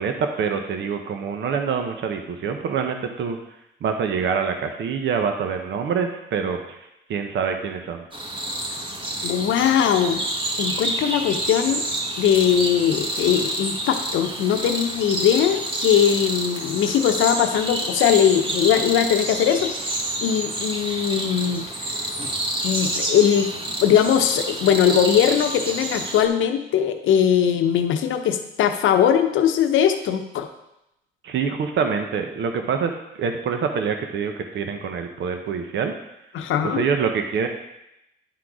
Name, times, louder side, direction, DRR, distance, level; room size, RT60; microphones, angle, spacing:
voice 1, 0.0-3.4 3.8-8.0 31.2-35.9 36.6-37.5, right 6 dB, 65° right, 5 dB, 0.8 m, -26 dB
sound 1, 8.1-26.3, right 1 dB, 25° right, 1.3 m, -28 dB
voice 2, 9.2-10.2 10.6-11.8 12.2-21.6 22.6-23.5 23.8-30.5 36.3-36.8, left 9 dB, 80° left, 7 dB, 0.8 m, -20 dB
10.5 x 3.9 x 4.8 m, 0.87 s
cardioid pair, 90°, 20 cm